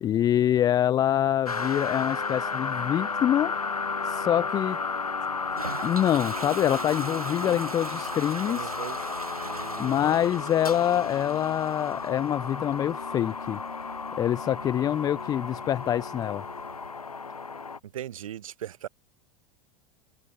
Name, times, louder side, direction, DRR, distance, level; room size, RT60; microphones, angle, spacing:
voice 1, 0.0-3.5 4.0-4.8 5.8-8.7 9.8-13.6 14.2-16.4, left 11 dB, 20° left, 0.4 m, -25 dB
sound 1, 1.5-17.8, left 4 dB, 80° left, 1.6 m, -33 dB
Toilet flush, 5.4-16.9, right 4 dB, 85° right, 3.6 m, -42 dB
voice 2, 8.5-9.0 9.4-10.3 17.8-18.9, right 11 dB, 65° right, 1.1 m, -39 dB
figure-of-eight pair, 85°, 18 cm